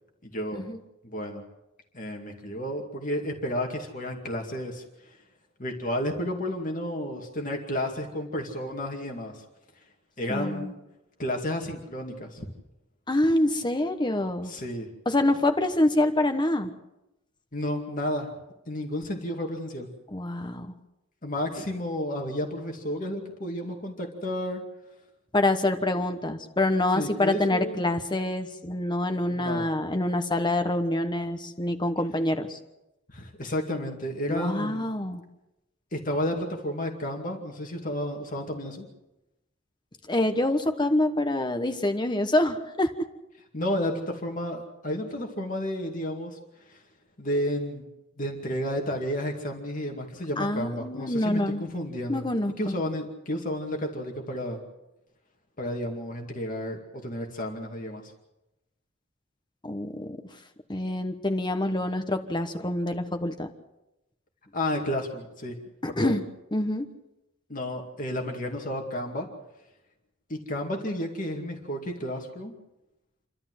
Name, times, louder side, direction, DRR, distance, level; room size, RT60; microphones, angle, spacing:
voice 1, 0.2-0.6 1.0-1.4 1.9-5.2 5.6-9.5 10.2-10.7 11.2-12.5 14.4-14.9 17.5-18.3 18.7-19.9 21.2-24.7 26.9-27.8 29.3-29.7 33.1-34.8 35.9-38.8 43.5-46.4 46.6-46.8 47.2-47.9 48.2-52.2 52.6-54.6 55.6-58.1 64.5-66.2 67.5-69.3 70.3-72.5, left 1 dB, 40° left, 2 dB, 2.3 m, -32 dB
voice 2, 10.3-10.7 13.1-14.5 15.0-16.7 20.1-20.7 25.3-32.6 34.3-35.2 40.1-42.9 50.4-51.7 52.1-52.6 59.6-60.2 60.7-63.5 66.0-66.2 66.5-66.8, left 1 dB, 20° left, 7 dB, 1.2 m, -26 dB
28.5 x 12.5 x 7.8 m, 0.93 s
head